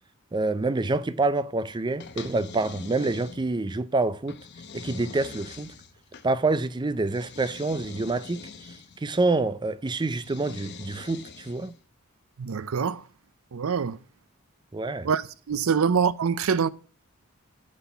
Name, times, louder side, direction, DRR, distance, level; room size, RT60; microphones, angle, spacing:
voice 1, 0.3-4.4 4.7-5.7 6.2-8.5 9.0-11.7 14.7-15.1, right 3 dB, 20° right, 0.4 m, -27 dB
sound 1, 2.0-3.7 4.3-6.3 7.1-9.0 10.2-11.8, left 5 dB, 55° left, 0.9 m, -43 dB
voice 2, 12.4-13.0 13.5-14.0 15.0-15.2 15.5-16.7, right 6 dB, 85° right, 0.5 m, -24 dB
6.2 x 5.8 x 6.8 m
head